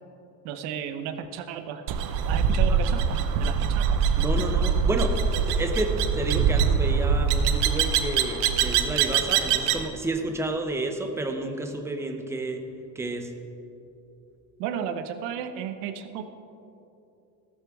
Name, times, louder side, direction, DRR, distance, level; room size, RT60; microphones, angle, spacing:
voice 1, 0.4-1.9 2.2-4.1 14.6-16.2, right 8 dB, 80° right, 8 dB, 1.0 m, -34 dB
sound 1, 1.9-9.9, right 6 dB, 55° right, 0.8 m, -23 dB
voice 2, 4.2-12.6 12.9-13.3, right 2 dB, 5° right, 4 dB, 0.6 m, -30 dB
15.0 x 13.0 x 3.6 m, 2.8 s
cardioid pair, 180°, 40 cm